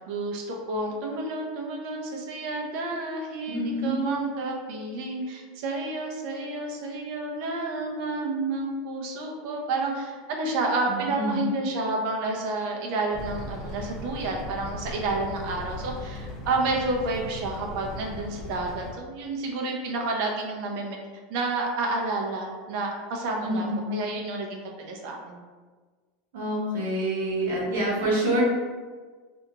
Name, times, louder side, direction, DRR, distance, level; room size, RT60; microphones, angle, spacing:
voice 1, 0.1-21.0 21.3-25.4, right 2 dB, 60° right, 0 dB, 0.7 m, -30 dB
voice 2, 3.5-4.2 10.9-11.4 23.4-23.9 26.3-28.4, right 1 dB, 85° right, -4 dB, 1.2 m, -27 dB
Thunder Dog, 13.1-18.9, left 1 dB, 25° left, 0.8 m, -38 dB
2.9 x 2.6 x 3.4 m, 1.4 s
supercardioid pair, 145°, 0 cm